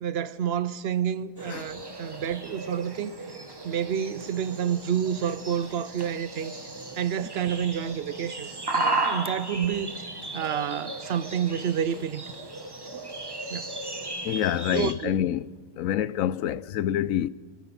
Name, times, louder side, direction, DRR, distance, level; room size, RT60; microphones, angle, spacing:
voice 1, 0.0-3.1 3.6-6.5 7.0-12.2 12.9-13.0 13.5-13.7 14.7-15.1, right 8 dB, 60° right, 0.8 m, -29 dB
sound 1, 1.4-14.9, right 2 dB, 20° right, 1.1 m, -35 dB
voice 2, 14.2-15.5 15.7-17.3, left 11 dB, 85° left, 1.0 m, -27 dB
24.0 x 9.2 x 5.8 m
omnidirectional pair, 1.4 m